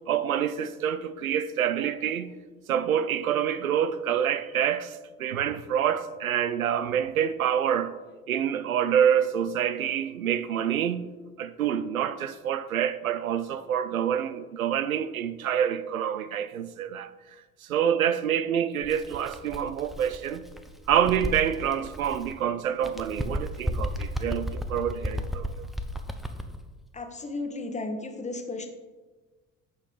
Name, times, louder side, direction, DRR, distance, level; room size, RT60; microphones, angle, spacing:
voice 1, 0.1-2.3 2.7-7.9 8.3-11.0 11.4-17.1 17.6-20.4 20.9-25.7, right 9 dB, 85° right, 0.5 m, -27 dB
Bird, 18.8-22.4 22.8-26.6, equal, ahead, 0.6 m, -34 dB
voice 2, 26.9-28.7, left 2 dB, 15° left, 1.2 m, -34 dB
8.6 x 6.2 x 3.9 m
figure-of-eight pair, 60°, 41 cm